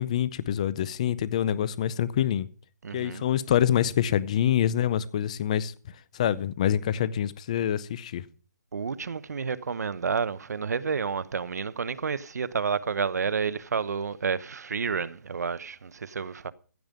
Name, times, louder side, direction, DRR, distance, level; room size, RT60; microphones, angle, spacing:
voice 1, 0.0-2.5 2.9-5.7 6.1-8.2, left 10 dB, 20° left, 0.5 m, -26 dB
voice 2, 2.8-3.2 8.7-16.5, right 5 dB, 65° right, 0.9 m, -30 dB
15.5 x 5.3 x 9.2 m
hypercardioid pair, 170°, 10 cm